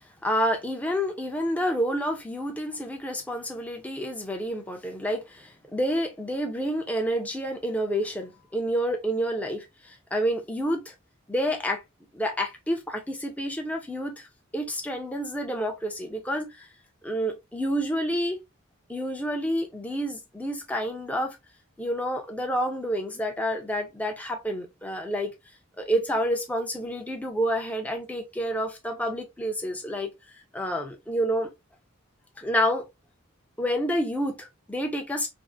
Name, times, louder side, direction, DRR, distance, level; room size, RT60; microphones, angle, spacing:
voice 1, 0.0-10.9 11.3-11.8 12.1-14.3 14.5-16.7 17.0-18.4 18.9-21.4 21.8-25.3 25.8-31.5 32.4-32.9 33.6-35.3, equal, 5° left, 0.5 m, -29 dB
3.4 x 2.1 x 2.4 m
head